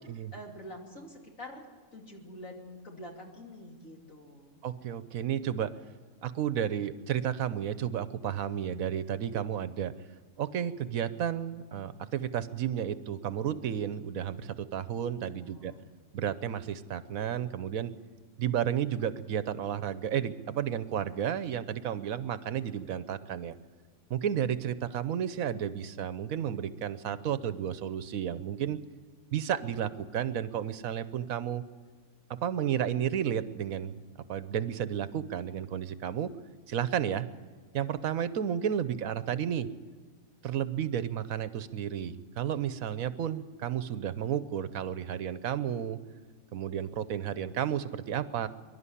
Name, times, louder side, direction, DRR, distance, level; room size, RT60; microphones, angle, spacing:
voice 1, 0.3-1.6 1.9-4.6 15.1-15.9 24.9-25.1 39.2-39.5, left 1 dB, 65° left, 0 dB, 3.2 m, -47 dB
voice 2, 4.6-5.7 6.2-9.9 10.4-15.7 16.1-17.9 18.4-23.5 24.1-28.8 29.3-31.6 32.3-34.0 34.3-36.3 36.7-37.3 37.7-39.7 40.4-46.0 46.5-48.5, right 9 dB, 75° right, 13 dB, 1.2 m, -32 dB
23.5 x 11.5 x 9.9 m, 1.4 s
omnidirectional pair, 1.5 m